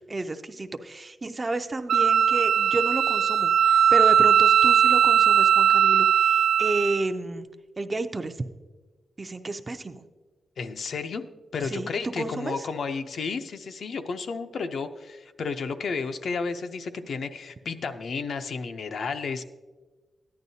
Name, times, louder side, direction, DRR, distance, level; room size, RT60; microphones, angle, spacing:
voice 1, 0.1-7.5 7.8-8.3 9.2-10.0 11.6-12.7, right 2 dB, 25° right, 8 dB, 0.4 m, -31 dB
Wind instrument woodwind instrument, 1.9-7.0, right 8 dB, 85° right, 0.4 m, -19 dB
voice 2, 10.6-11.2 11.5-19.4, left 5 dB, 60° left, 8 dB, 0.6 m, -32 dB
14.5 x 10.5 x 2.7 m, 1.3 s
wide cardioid pair, 170°, 0 cm